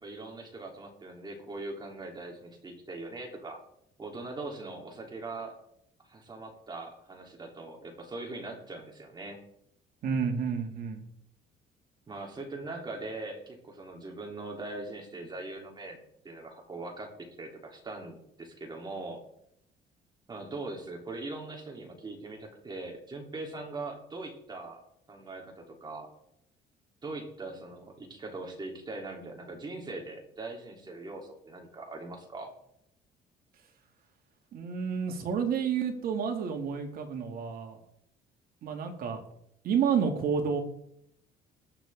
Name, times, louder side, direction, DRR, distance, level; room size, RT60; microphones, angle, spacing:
voice 1, 0.0-3.6 4.0-5.5 6.1-9.4 12.1-16.0 16.2-19.2 20.3-24.8 25.1-26.1 27.0-32.5, right 2 dB, 25° right, 1 dB, 3.2 m, -41 dB
voice 2, 10.0-11.0 34.5-37.8 38.6-39.2 39.6-40.6, right 6 dB, 60° right, 4 dB, 2.3 m, -30 dB
20.5 x 6.9 x 3.7 m, 0.73 s
cardioid pair, 110°, 17 cm